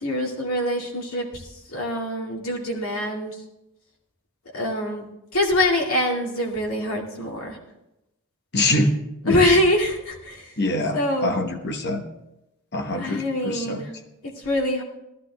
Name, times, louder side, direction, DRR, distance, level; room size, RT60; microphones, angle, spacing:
voice 1, 0.0-1.4 1.7-3.4 4.5-5.0 5.3-7.6 9.3-10.5 10.9-11.3 12.9-13.9 14.4-14.8, left 1 dB, 80° left, 0 dB, 2.3 m, -24 dB
voice 2, 8.5-9.0 9.2-9.4 10.6-12.0 12.7-13.8, left 1 dB, 50° left, 5 dB, 1.1 m, -24 dB
17.0 x 12.0 x 3.4 m, 0.90 s
head